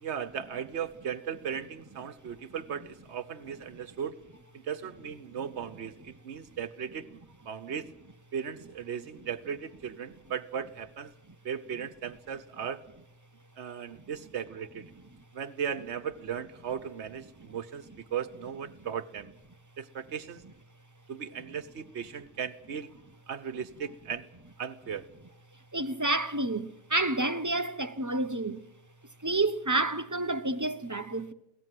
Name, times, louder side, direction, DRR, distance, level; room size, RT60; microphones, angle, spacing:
voice 1, 0.0-4.2 4.5-7.9 8.3-11.1 11.4-12.8 13.6-14.9 15.3-19.3 19.8-20.4 21.1-22.9 23.3-24.3 24.6-25.0, right 8 dB, 70° right, 1.3 m, -37 dB
voice 2, 25.7-28.6 29.2-31.3, right 2 dB, 15° right, 0.9 m, -29 dB
22.0 x 17.5 x 7.7 m
omnidirectional pair, 1.2 m